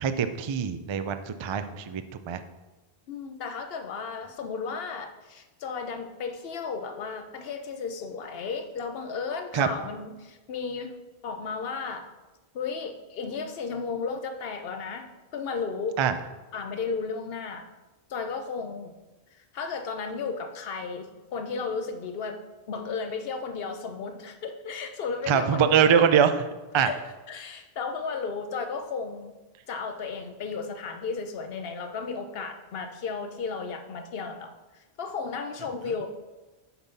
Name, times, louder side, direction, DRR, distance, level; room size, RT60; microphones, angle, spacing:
voice 1, 0.0-2.4 9.5-9.7 16.0-16.2 25.3-26.3 26.7-26.9, right 8 dB, 50° right, 10 dB, 0.3 m, -23 dB
voice 2, 3.1-10.9 11.2-12.1 12.5-16.0 16.5-17.7 18.1-18.9 19.3-26.0 26.7-29.4 29.7-34.5 35.0-36.1, left 5 dB, 70° left, 7 dB, 1.0 m, -34 dB
8.5 x 5.5 x 4.1 m, 1.1 s
omnidirectional pair, 1.1 m